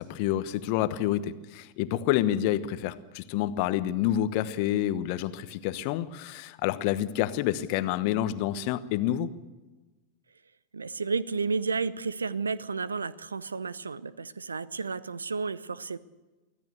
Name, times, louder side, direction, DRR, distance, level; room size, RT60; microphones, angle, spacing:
voice 1, 0.0-9.3, left 12 dB, 45° left, 13 dB, 1.1 m, -28 dB
voice 2, 10.7-16.0, right 4 dB, 75° right, 19 dB, 0.7 m, -32 dB
24.5 x 16.0 x 6.7 m, 1.2 s
figure-of-eight pair, 90°, 0 cm